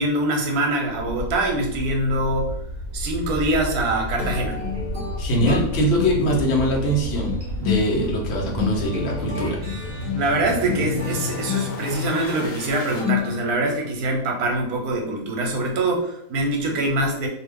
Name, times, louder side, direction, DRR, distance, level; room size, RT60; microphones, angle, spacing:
voice 1, 0.0-2.5 2.9-4.6 10.1-17.3, right 2 dB, 85° right, 2 dB, 1.2 m, -24 dB
sound 1, 0.9-13.1, equal, 75° left, 1.1 m, -32 dB
sound 2, 4.2-13.8, left 7 dB, 40° right, 0.7 m, -30 dB
voice 2, 5.2-9.6, equal, 55° left, -1 dB, 0.9 m, -22 dB
2.5 x 2.3 x 3.4 m, 0.74 s
omnidirectional pair, 1.6 m